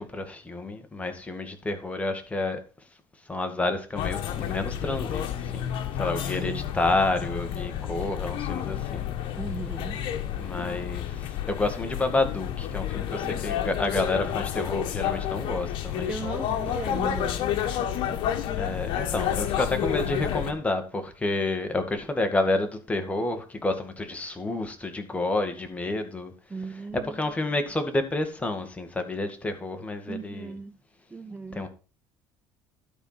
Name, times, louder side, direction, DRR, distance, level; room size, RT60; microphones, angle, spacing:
voice 1, 0.0-2.6 3.3-9.1 10.4-16.1 18.6-26.3 27.0-30.5 31.5-31.7, left 2 dB, 15° left, 2.0 m, -29 dB
sound 1, 4.0-20.5, left 10 dB, 65° left, 1.5 m, -30 dB
voice 2, 6.0-6.7 9.4-10.0 13.2-13.5 16.1-17.4 26.5-27.2 30.1-30.8 31.1-31.7, right 4 dB, 15° right, 0.5 m, -37 dB
12.0 x 4.7 x 5.8 m
cardioid pair, 105°, 9 cm